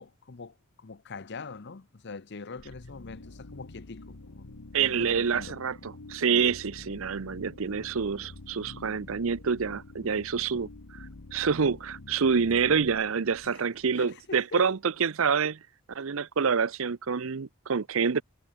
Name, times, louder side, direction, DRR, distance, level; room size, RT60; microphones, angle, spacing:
voice 1, 0.0-4.5 4.7-5.6 13.4-13.6 13.9-14.7, left 4 dB, 50° left, 0.7 m, -43 dB
sound 1, 2.6-14.3, left 2 dB, 90° left, 1.4 m, -47 dB
voice 2, 4.7-10.7 11.3-15.6 15.9-18.2, right 6 dB, 65° right, 0.6 m, -27 dB
head